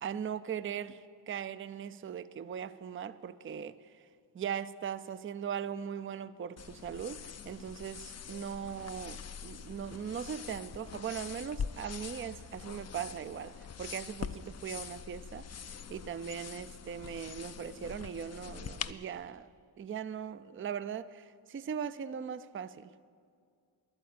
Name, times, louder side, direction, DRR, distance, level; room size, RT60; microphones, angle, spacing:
voice 1, 0.0-4.1 4.3-15.5 15.9-19.5 19.8-22.9, right 8 dB, 30° right, 0.4 m, -39 dB
sound 1, 6.6-18.9, left 7 dB, 35° left, 0.4 m, -44 dB
11.0 x 8.8 x 8.4 m
cardioid pair, 50°, 47 cm